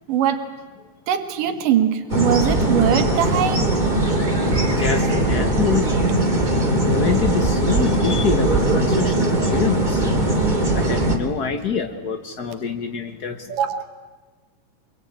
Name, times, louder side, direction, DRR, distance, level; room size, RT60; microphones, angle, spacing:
voice 1, 0.1-0.4 1.1-3.6 13.5-13.8, right 10 dB, 70° right, 8 dB, 3.2 m, -21 dB
sound 1, 2.1-11.2, right 1 dB, 15° right, 2.5 m, -20 dB
voice 2, 4.8-5.9 6.9-10.0 10.7-13.4, left 6 dB, 85° left, 7 dB, 0.8 m, -25 dB
25.5 x 23.5 x 8.9 m, 1.4 s
omnidirectional pair, 3.9 m